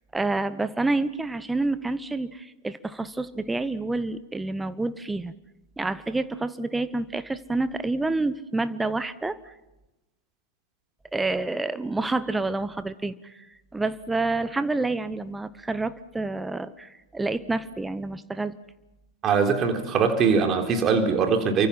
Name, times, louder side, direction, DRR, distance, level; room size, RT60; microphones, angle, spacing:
voice 1, 0.1-5.3 5.8-9.5 11.1-13.4 13.7-18.5, right 2 dB, 10° right, 15 dB, 1.0 m, -28 dB
voice 2, 19.2-21.7, right 5 dB, 30° right, 4 dB, 3.7 m, -22 dB
28.5 x 24.5 x 5.9 m, 1.0 s
figure-of-eight pair, 90°, 0 cm